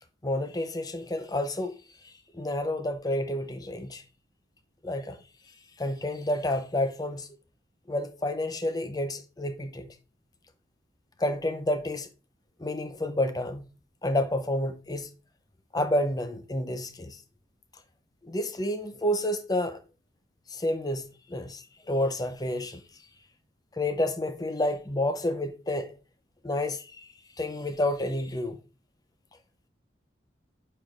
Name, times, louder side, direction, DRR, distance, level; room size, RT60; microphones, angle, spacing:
voice 1, 0.2-1.7 2.3-4.0 4.8-5.2 5.8-7.3 7.9-9.9 11.2-12.1 12.6-13.6 14.0-15.1 15.7-17.2 18.2-19.8 20.5-22.8 23.8-25.9 26.4-27.1 27.4-28.6, left 1 dB, 20° left, 0.7 m, -29 dB
9.1 x 4.6 x 2.5 m
head